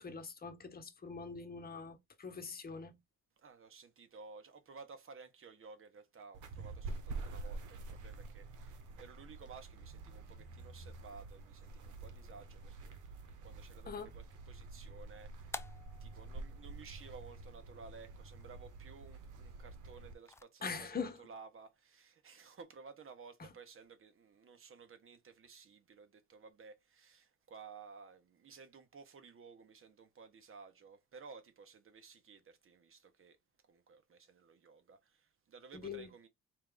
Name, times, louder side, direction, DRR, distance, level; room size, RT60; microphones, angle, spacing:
voice 1, 0.0-3.0 13.9-14.1 20.6-21.2 23.4-23.5 35.8-36.1, left 5 dB, 30° left, 1.0 m, -43 dB
voice 2, 3.4-13.0 13.4-15.7 16.0-33.4 33.6-36.3, right 5 dB, 45° right, 1.0 m, -55 dB
sound 1, 6.3-20.1, right 3 dB, 80° right, 1.0 m, -48 dB
sound 2, 14.1-20.4, left 3 dB, 10° left, 0.3 m, -54 dB
4.4 x 2.6 x 3.6 m
cardioid pair, 90°, 30 cm